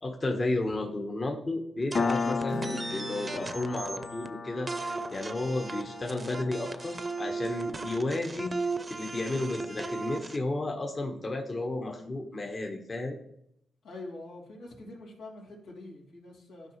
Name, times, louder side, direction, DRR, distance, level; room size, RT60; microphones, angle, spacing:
voice 1, 0.0-8.5 8.9-13.2, left 2 dB, 40° left, 2 dB, 1.3 m, -33 dB
sound 1, 1.9-4.3 4.7-10.4, right 3 dB, 30° right, 0.8 m, -37 dB
Piano, 2.0-9.1, left 5 dB, 55° left, 0.5 m, -36 dB
Acoustic guitar, 2.5-6.1, right 4 dB, 85° right, 1.2 m, -47 dB
voice 2, 13.8-16.8, left 2 dB, 90° left, -4 dB, 2.9 m, -45 dB
12.0 x 4.9 x 3.2 m, 0.74 s
supercardioid pair, 55°, 0 cm